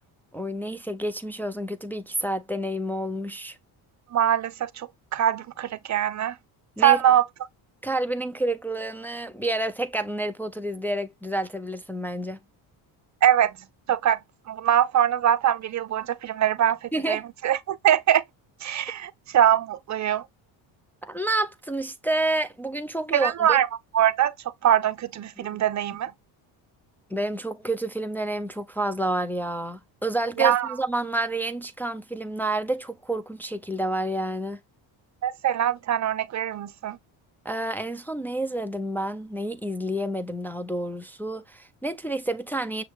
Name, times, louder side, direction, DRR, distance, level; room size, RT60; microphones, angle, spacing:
voice 1, 0.3-3.6 6.8-7.0 7.8-12.4 16.9-17.2 21.0-23.6 25.4-25.6 27.1-34.6 37.5-42.8, right 1 dB, 5° left, 0.3 m, -29 dB
voice 2, 4.1-6.3 6.8-7.2 13.2-13.6 13.9-14.2 14.5-18.2 18.6-20.2 23.1-23.7 23.9-24.3 24.6-26.1 30.4-30.7 35.2-37.0, right 10 dB, 35° right, 0.6 m, -23 dB
6.2 x 2.2 x 3.4 m
supercardioid pair, 75°, 50 cm